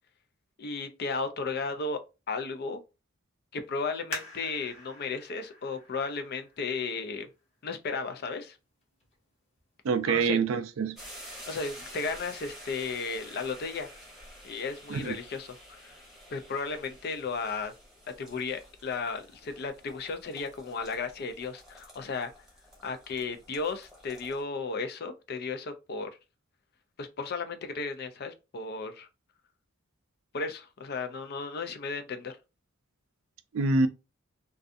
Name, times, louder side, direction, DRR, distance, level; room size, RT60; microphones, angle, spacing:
voice 1, 0.6-2.0 2.3-2.8 3.5-7.3 7.6-8.6 10.1-10.4 11.5-13.9 14.4-16.0 16.3-17.7 18.2-22.3 22.8-26.1 27.0-29.1 30.3-32.4, left 4 dB, 50° left, 0.4 m, -34 dB
sound 1, 4.1-7.5 8.1-8.2 8.8-9.2 9.6-9.7, left 2 dB, 30° left, 1.0 m, -44 dB
voice 2, 9.8-11.0 14.9-15.1 33.5-33.9, right 4 dB, 75° right, 0.4 m, -26 dB
sound 2, 11.0-24.4, equal, 5° right, 0.8 m, -50 dB
2.5 x 2.3 x 2.5 m
head